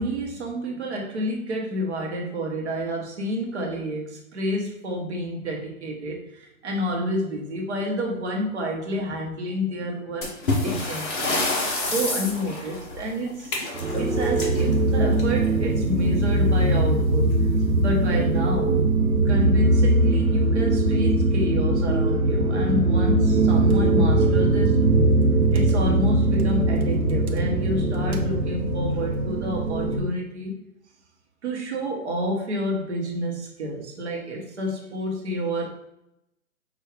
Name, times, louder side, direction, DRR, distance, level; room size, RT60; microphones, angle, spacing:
voice 1, 0.0-13.7 14.0-17.3 17.8-18.8 19.2-24.8 25.5-30.5 31.4-35.7, equal, 50° right, 0 dB, 1.3 m, -29 dB
sound 1, 10.2-15.6 16.8-17.0 17.3-17.4 18.1-18.2 18.8-19.1, left 2 dB, 35° left, 1.2 m, -28 dB
sound 2, 13.7-30.0, right 2 dB, 75° right, 0.9 m, -21 dB
5.9 x 2.7 x 3.2 m, 0.84 s
hypercardioid pair, 160°, 44 cm